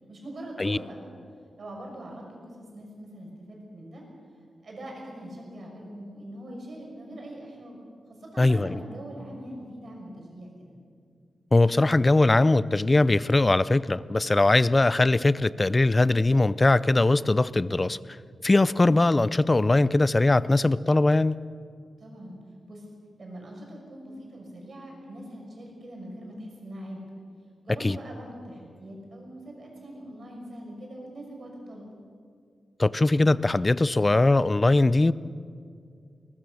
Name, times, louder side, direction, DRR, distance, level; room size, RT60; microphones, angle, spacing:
voice 1, 0.1-1.0 1.6-4.1 4.6-7.8 8.1-10.8 22.0-22.4 22.7-22.8 23.2-27.0 27.6-32.0, right 1 dB, 50° right, 0 dB, 6.0 m, -42 dB
voice 2, 8.4-8.8 11.5-18.0 18.4-21.4 27.8-28.0 32.8-35.1, left 2 dB, 20° left, 18 dB, 0.4 m, -21 dB
22.0 x 19.5 x 6.4 m, 2.3 s
wide cardioid pair, 145°, 0 cm